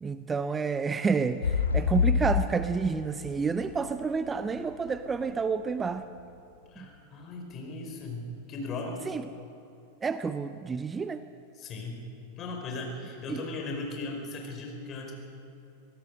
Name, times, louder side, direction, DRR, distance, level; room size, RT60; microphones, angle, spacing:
voice 1, 0.0-6.1 6.8-6.9 9.1-9.2 10.0-11.2 13.3-13.4, right 5 dB, 15° right, 12 dB, 0.6 m, -29 dB
sound 1, 1.4-5.3 5.8-5.9, left 6 dB, 70° left, 1.1 m, -27 dB
voice 2, 6.7-9.0 11.5-12.0 12.4-15.1, left 2 dB, 30° left, 2 dB, 4.9 m, -37 dB
24.5 x 18.0 x 6.5 m, 2.8 s
figure-of-eight pair, 90°, 0 cm